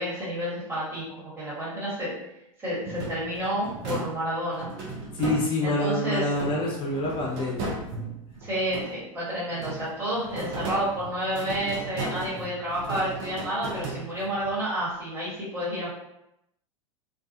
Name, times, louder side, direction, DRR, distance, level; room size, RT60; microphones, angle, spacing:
voice 1, 0.0-2.1 2.6-4.7 5.6-6.2 8.4-15.9, equal, 15° right, -9 dB, 1.4 m, -30 dB
sound 1, 2.8-5.9 6.3-9.2 9.5-14.4, right 3 dB, 50° right, 0.8 m, -36 dB
voice 2, 5.1-7.8, left 1 dB, 30° left, -2 dB, 0.6 m, -27 dB
2.4 x 2.2 x 2.7 m, 0.82 s
hypercardioid pair, 95°, 18 cm